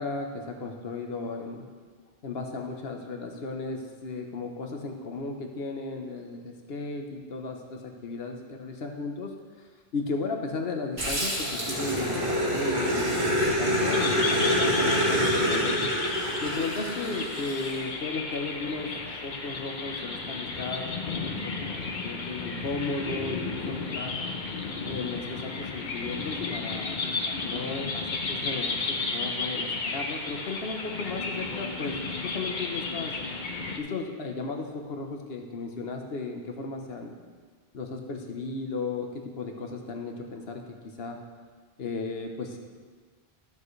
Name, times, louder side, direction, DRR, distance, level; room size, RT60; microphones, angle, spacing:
voice 1, 0.0-1.7 2.2-9.3 9.9-15.9 16.4-19.0 19.2-24.1 24.9-32.0 32.2-33.1 33.8-37.2 37.7-41.2 41.8-42.6, left 3 dB, 75° left, 3 dB, 1.2 m, -35 dB
Growling, 11.0-17.7, equal, 50° right, 2.4 m, -26 dB
sound 1, 13.9-33.8, left 3 dB, 50° left, 0.9 m, -33 dB
13.5 x 7.1 x 3.2 m, 1.5 s
omnidirectional pair, 1.0 m